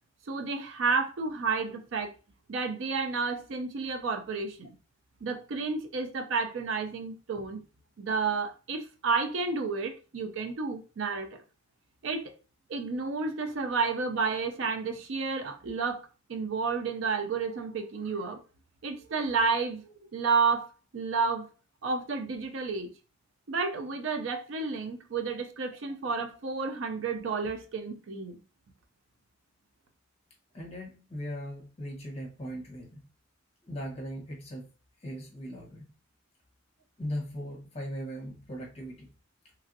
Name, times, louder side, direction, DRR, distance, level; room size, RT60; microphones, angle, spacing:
voice 1, 0.3-2.1 2.5-4.7 5.2-7.6 8.0-11.4 12.0-12.3 12.7-16.0 16.3-18.4 18.8-20.7 20.9-21.5 21.8-22.9 23.5-28.4, right 4 dB, 65° right, 0.4 m, -31 dB
voice 2, 30.5-33.1 33.6-34.7 35.0-35.9 37.0-39.1, equal, 30° left, 0.8 m, -39 dB
2.9 x 2.5 x 2.6 m
head